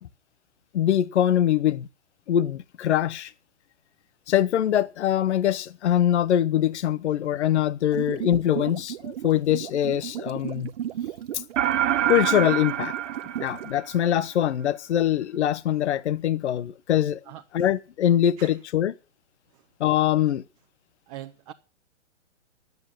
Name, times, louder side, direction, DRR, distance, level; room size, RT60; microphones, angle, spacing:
voice 1, 0.7-1.9 2.3-3.3 4.3-10.7 11.3-11.4 12.1-12.9 13.4-17.2 17.5-18.9 19.8-20.4, left 11 dB, 65° left, 0.8 m, -23 dB
sound 1, 7.9-13.7, right 11 dB, 55° right, 1.1 m, -35 dB
sound 2, 11.6-14.2, right 11 dB, 80° right, 0.8 m, -26 dB
voice 2, 21.1-21.5, right 13 dB, 30° right, 0.8 m, -41 dB
12.0 x 8.1 x 7.4 m
hypercardioid pair, 150°, 36 cm